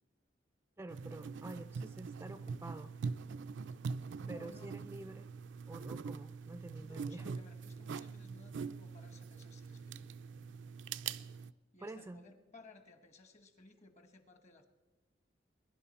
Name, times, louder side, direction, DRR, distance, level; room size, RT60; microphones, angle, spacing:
voice 1, 0.8-2.9 4.3-5.3 5.7-7.4 11.8-12.2, right 2 dB, 15° right, 10 dB, 0.4 m, -48 dB
sound 1, 0.9-11.5, right 5 dB, 75° right, 0.4 m, -43 dB
voice 2, 4.2-4.9 6.8-10.1 11.7-14.7, left 2 dB, 40° left, 9 dB, 1.2 m, -59 dB
21.5 x 11.0 x 4.2 m, 1.1 s
head